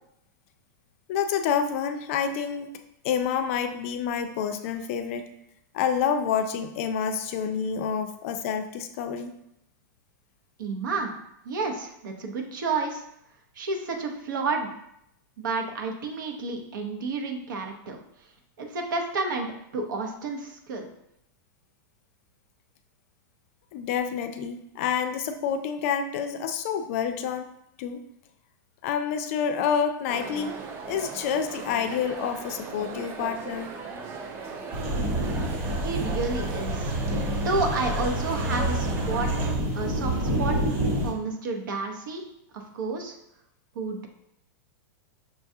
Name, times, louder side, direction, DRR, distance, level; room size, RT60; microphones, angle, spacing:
voice 1, 1.1-2.7 3.0-5.3 5.7-9.3 23.7-27.5 27.8-28.0 28.8-30.6 30.9-33.7, left 7 dB, 45° left, 8 dB, 0.4 m, -28 dB
voice 2, 10.6-11.1 11.4-13.0 13.5-14.7 15.4-18.3 18.6-20.9 35.8-36.9 37.3-39.3 39.7-40.6 41.0-42.2 42.5-43.2 43.7-44.1, right 3 dB, 80° right, 3 dB, 0.8 m, -30 dB
sound 1, 30.1-39.5, right 5 dB, 20° right, 0.4 m, -38 dB
sound 2, 34.7-41.1, right 1 dB, 45° right, 1.1 m, -27 dB
6.0 x 2.3 x 2.7 m, 0.77 s
supercardioid pair, 160°, 10 cm